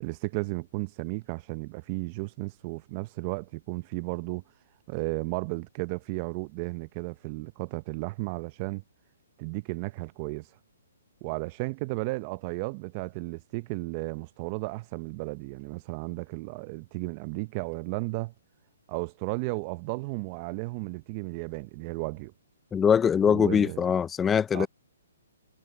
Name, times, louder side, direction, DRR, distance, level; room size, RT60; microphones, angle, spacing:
voice 1, 0.0-4.4 4.9-8.8 9.4-10.4 11.2-18.3 18.9-22.3 23.2-23.8 24.5-24.7, right 25 dB, 30° right, 0.6 m, -34 dB
voice 2, 22.7-24.7, left 7 dB, 10° left, 0.4 m, -22 dB
hypercardioid pair, 145°, 0 cm